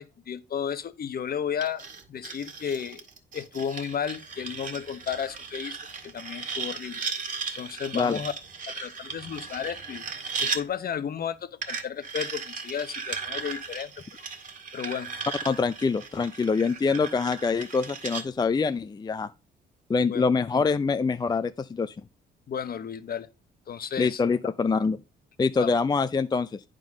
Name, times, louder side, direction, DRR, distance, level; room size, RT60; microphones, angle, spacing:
voice 1, 0.0-3.0 3.3-5.8 6.0-7.0 7.6-8.3 8.7-10.0 10.4-13.9 14.2-14.3 14.7-15.1 20.0-20.2 22.5-23.3 23.7-24.2 25.6-25.7, left 8 dB, 50° left, 0.9 m, -33 dB
sound 1, 1.6-10.6 11.6-18.2, right 5 dB, 40° right, 1.8 m, -36 dB
voice 2, 15.5-19.3 19.9-22.0 24.0-25.0 25.4-26.6, left 4 dB, 20° left, 0.4 m, -25 dB
9.1 x 3.8 x 6.3 m
cardioid pair, 90°, 20 cm